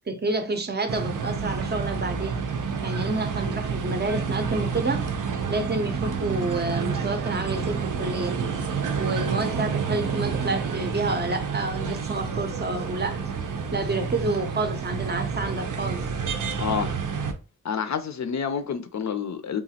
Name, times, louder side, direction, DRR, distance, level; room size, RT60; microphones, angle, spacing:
voice 1, 0.1-2.4 2.8-5.1 5.5-8.4 9.0-13.2 13.7-16.0, right 2 dB, 35° right, 0.5 m, -29 dB
sound 1, 0.9-17.3, right 6 dB, 90° right, 0.5 m, -29 dB
voice 2, 16.6-16.9 17.6-19.6, left 7 dB, 65° left, 0.5 m, -28 dB
2.9 x 2.4 x 2.8 m
wide cardioid pair, 115°, 30 cm